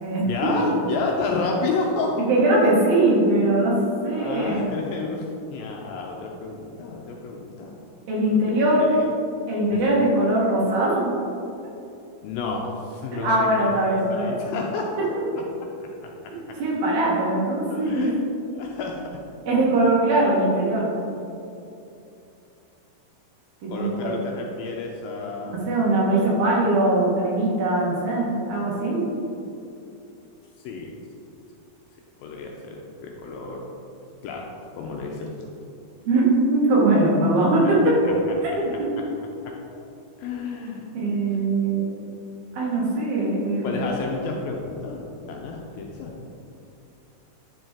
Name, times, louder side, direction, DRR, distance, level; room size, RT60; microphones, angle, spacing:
voice 1, 0.3-2.2 4.1-5.3 5.5-7.8 8.8-9.1 9.7-9.8 12.2-13.7 14.1-15.1 15.4-15.5 15.8-16.1 16.5-16.6 17.7-18.2 18.5-19.2 23.7-25.6 30.6-31.0 32.2-33.7 34.2-35.5 39.5-39.9 40.2-40.9 43.6-46.1, left 3 dB, 80° left, 0 dB, 2.2 m, -30 dB
voice 2, 2.3-3.8 4.0-4.7 8.1-8.9 9.5-11.1 13.2-14.3 15.0-15.1 16.3-18.1 19.5-20.9 23.6-24.1 25.5-29.1 36.1-38.0 38.4-38.9 40.9-41.8 42.5-43.8, right 2 dB, 70° right, -5 dB, 3.3 m, -21 dB
9.9 x 5.3 x 3.6 m, 2.7 s
omnidirectional pair, 4.5 m